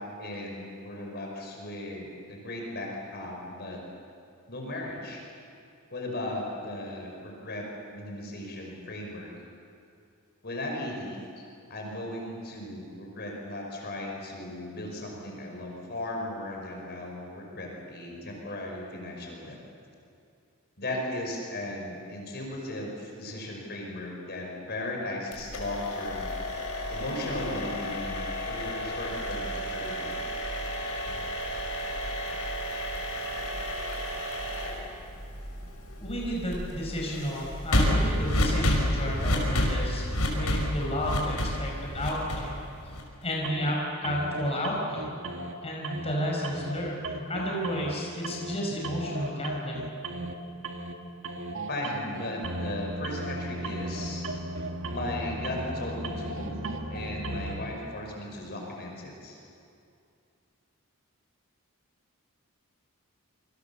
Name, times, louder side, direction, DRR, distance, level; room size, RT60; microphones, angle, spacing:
voice 1, 0.0-3.8 4.5-5.2 5.9-9.3 10.4-19.6 20.8-26.3 26.9-30.2 31.1-31.2 51.7-54.2 54.9-56.6 56.9-59.4, left 1 dB, 50° left, 0 dB, 5.3 m, -36 dB
sound 1, 25.3-43.2, left 1 dB, 85° left, 5.6 m, -31 dB
voice 2, 36.0-40.1 40.3-42.6 43.2-45.1 45.6-49.8, equal, 30° left, -2 dB, 5.2 m, -32 dB
sound 2, 43.4-43.7 44.0-45.5 45.8-46.2 46.4-48.0 48.2-48.5 48.8-50.4 50.6-50.9 51.2-57.6, right 1 dB, 60° right, 2.1 m, -36 dB
28.0 x 25.0 x 7.1 m, 2.5 s
head